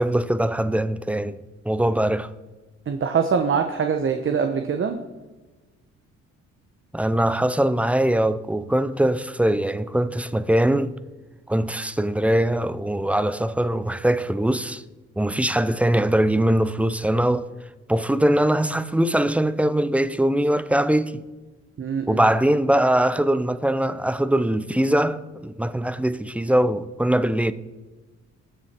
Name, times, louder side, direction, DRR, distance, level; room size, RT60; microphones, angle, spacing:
voice 1, 0.0-1.4 1.7-2.3 6.9-10.9 11.5-14.8 15.2-17.5 17.9-21.2 22.1-27.5, right 1 dB, 5° right, 0.6 m, -22 dB
voice 2, 2.9-5.0 21.8-22.3, right 6 dB, 45° right, 1.1 m, -23 dB
20.5 x 7.2 x 4.5 m
cardioid pair, 90°, 30 cm